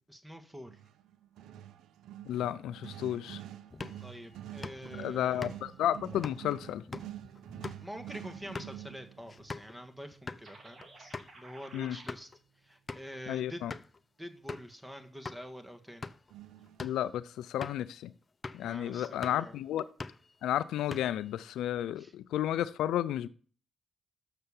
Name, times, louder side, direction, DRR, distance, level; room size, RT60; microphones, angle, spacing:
voice 1, 0.1-0.8 4.0-5.4 7.8-12.3 12.6-13.6 14.2-16.1 18.6-19.6 22.0-22.1, equal, 10° right, 1.7 m, -46 dB
sound 1, 0.6-11.5 16.3-17.0, right 12 dB, 85° right, 0.5 m, -48 dB
voice 2, 2.3-3.4 4.9-6.8 11.7-12.0 13.3-13.7 16.8-18.1 18.5-19.8 20.4-23.3, left 11 dB, 85° left, 0.4 m, -32 dB
sound 2, 3.7-9.8 10.1-10.4 10.8-10.9 11.1-11.3 11.8-12.4 12.9-13.2 13.7-14.0 14.5-14.7 15.2-15.4 15.9-16.3 16.7-17.0 17.6-17.9 18.4-18.7 19.0-19.5 19.8-20.3 20.7-21.3, left 4 dB, 40° left, 0.6 m, -44 dB
sound 3, 10.4-12.1, right 2 dB, 50° right, 2.3 m, -53 dB
6.7 x 6.7 x 7.0 m
supercardioid pair, 50°, 0 cm